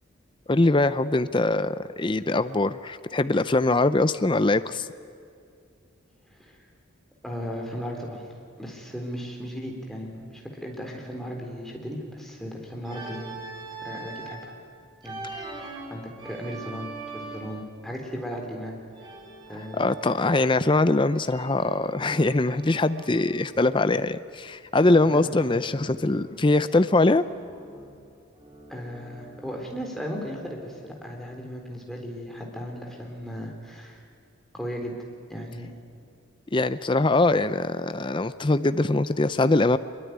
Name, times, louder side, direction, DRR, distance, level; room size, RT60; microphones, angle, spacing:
voice 1, 0.5-4.9 19.8-27.2 36.5-39.8, left 2 dB, 25° left, 12 dB, 0.5 m, -22 dB
voice 2, 6.3-6.6 7.2-13.4 13.7-14.5 15.0-15.3 15.9-18.8 19.5-19.9 25.0-25.3 28.7-34.0 34.5-34.9 35.3-35.7, equal, ahead, 0 dB, 3.8 m, -36 dB
Organ, 12.8-14.5 15.0-17.7 18.9-20.7 21.0-23.4 24.9-26.7 27.0-29.8, right 3 dB, 25° right, 3.8 m, -42 dB
24.0 x 22.5 x 9.5 m, 2.4 s
head